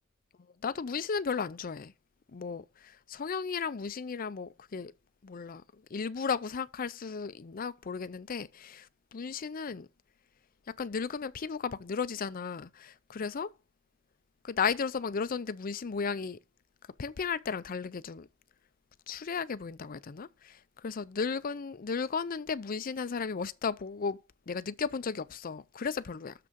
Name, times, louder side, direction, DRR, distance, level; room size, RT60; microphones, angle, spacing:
voice 1, 0.6-1.9 2.3-4.9 5.2-5.6 5.9-9.9 10.8-13.5 14.4-16.4 17.0-18.3 19.1-24.2 24.5-26.3, left 5 dB, 45° left, 0.5 m, -34 dB
6.8 x 6.1 x 6.8 m
head